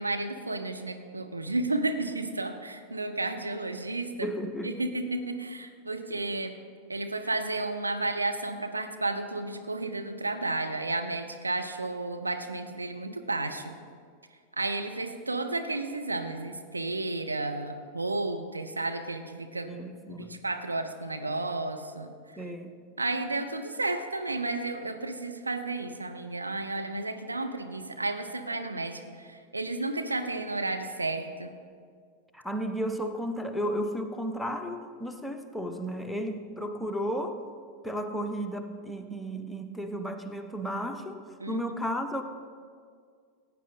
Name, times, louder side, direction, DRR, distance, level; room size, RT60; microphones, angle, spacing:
voice 1, 0.0-4.3 4.6-6.6 6.9-13.8 14.6-19.7 20.2-22.4 23.0-31.6 41.4-41.6, right 2 dB, 80° right, 6 dB, 0.7 m, -32 dB
voice 2, 4.2-4.8 19.6-20.3 22.4-22.8 32.3-37.4 37.8-42.2, equal, ahead, 5 dB, 0.8 m, -33 dB
15.0 x 8.8 x 4.0 m, 2.1 s
figure-of-eight pair, 90°, 0 cm